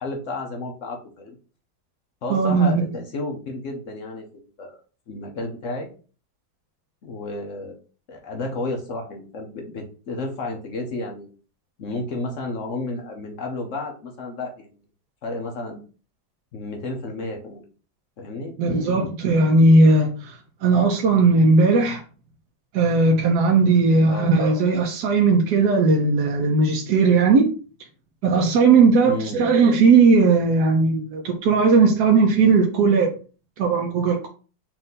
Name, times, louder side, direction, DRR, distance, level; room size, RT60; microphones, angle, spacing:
voice 1, 0.0-1.4 2.2-4.2 4.6-4.8 5.1-5.9 7.0-7.7 8.1-11.3 11.8-14.7 15.2-15.8 16.5-17.6 18.2-19.1 24.1-24.3 29.0-29.4, left 2 dB, 60° left, 0.8 m, -32 dB
voice 2, 2.3-2.9 18.6-22.0 22.7-27.5 28.2-33.1 33.6-34.3, right 4 dB, 65° right, 1.0 m, -17 dB
4.4 x 2.6 x 3.8 m
omnidirectional pair, 2.2 m